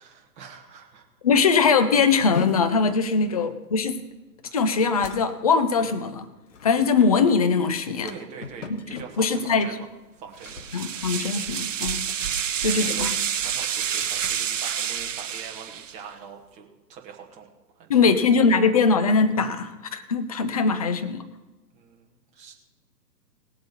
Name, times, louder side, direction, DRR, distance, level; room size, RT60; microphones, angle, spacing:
voice 1, 0.0-1.1 8.0-9.9 10.1-10.6 12.4-17.5 17.7-18.1 21.7-22.5, right 6 dB, 15° right, 2 dB, 1.2 m, -43 dB
voice 2, 1.2-4.0 4.5-6.3 6.6-8.1 8.7-9.7 10.7-12.1 12.6-13.2 17.9-21.2, left 5 dB, 25° left, 10 dB, 0.6 m, -21 dB
sound 1, 2.2-11.8 12.1-12.5 12.9-13.1 13.7-15.6, left 4 dB, 50° left, 1.3 m, -41 dB
sound 2, 10.4-16.0, right 8 dB, 50° right, 0.6 m, -28 dB
19.0 x 7.7 x 4.4 m, 1.1 s
figure-of-eight pair, 125°, 49 cm